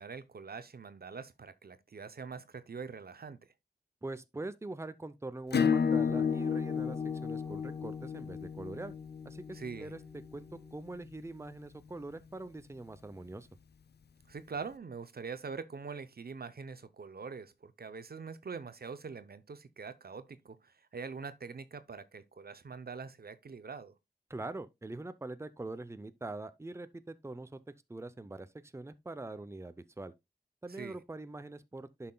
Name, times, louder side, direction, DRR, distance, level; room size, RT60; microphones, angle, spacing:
voice 1, 0.0-3.4 9.5-9.9 14.3-23.9 30.7-31.0, right 5 dB, 65° right, 0.7 m, -44 dB
voice 2, 4.0-8.9 9.2-13.5 24.3-27.6 27.9-30.1 30.6-32.1, right 2 dB, 15° right, 0.5 m, -43 dB
Acoustic guitar / Strum, 5.5-10.8, left 6 dB, 80° left, 0.5 m, -32 dB
sound 1, 6.0-10.8, right 1 dB, 15° left, 0.8 m, -51 dB
10.5 x 5.7 x 2.2 m
wide cardioid pair, 55°, 17 cm